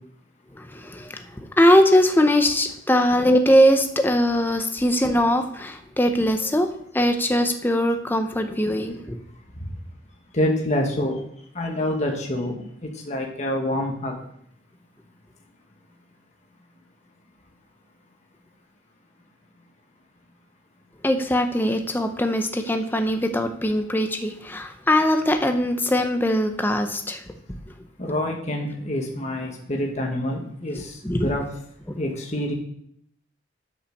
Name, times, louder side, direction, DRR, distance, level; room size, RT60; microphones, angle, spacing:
voice 1, 0.6-9.2 21.0-27.2 31.0-31.3 31.9-32.0, equal, 10° left, 6 dB, 0.7 m, -21 dB
voice 2, 10.3-11.2 11.5-12.5 13.1-14.1 28.0-31.4 32.0-32.5, left 1 dB, 35° left, 1 dB, 1.4 m, -26 dB
8.4 x 5.7 x 6.5 m, 0.69 s
head